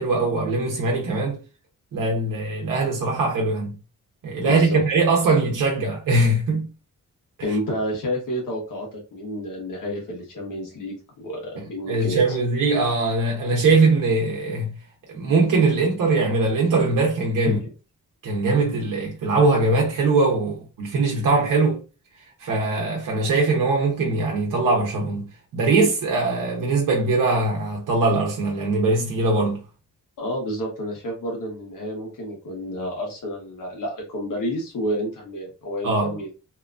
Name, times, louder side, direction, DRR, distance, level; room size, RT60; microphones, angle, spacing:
voice 1, 0.0-1.4 1.9-3.8 4.2-6.6 11.9-14.7 15.1-17.6 18.2-21.8 22.4-29.6 35.8-36.1, right 3 dB, 75° right, 0.8 m, -21 dB
voice 2, 4.4-4.8 7.4-12.4 17.4-17.7 30.2-36.3, equal, 75° left, 1.1 m, -30 dB
2.8 x 2.3 x 2.4 m
wide cardioid pair, 145°, 32 cm